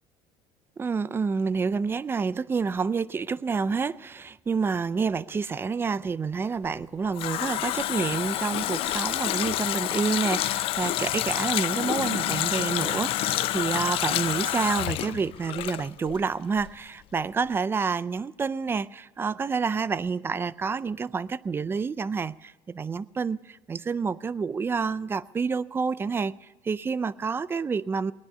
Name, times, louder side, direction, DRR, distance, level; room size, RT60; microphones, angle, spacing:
voice 1, 0.8-28.1, right 5 dB, 20° right, 16 dB, 0.4 m, -28 dB
Water tap faucet, 6.7-16.3 16.6-16.7, left 14 dB, 55° left, 0.4 m, -28 dB
19.0 x 10.5 x 6.7 m, 1.2 s
cardioid pair, 120°, 11 cm